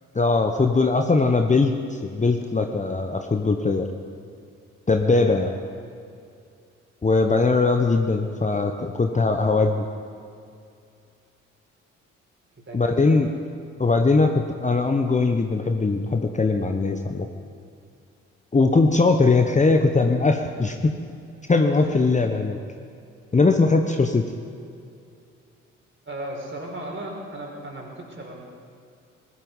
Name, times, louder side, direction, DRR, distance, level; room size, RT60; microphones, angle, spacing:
voice 1, 0.1-3.9 4.9-5.5 7.0-9.9 12.7-13.3 13.8-17.3 18.5-20.9 21.5-22.6 23.3-24.3, left 3 dB, 20° left, 5 dB, 1.1 m, -20 dB
voice 2, 5.1-5.8 12.6-13.4 21.8-22.1 26.0-28.4, right 1 dB, 35° right, -1 dB, 4.9 m, -36 dB
20.5 x 11.5 x 5.5 m, 2.5 s
figure-of-eight pair, 45°, 35 cm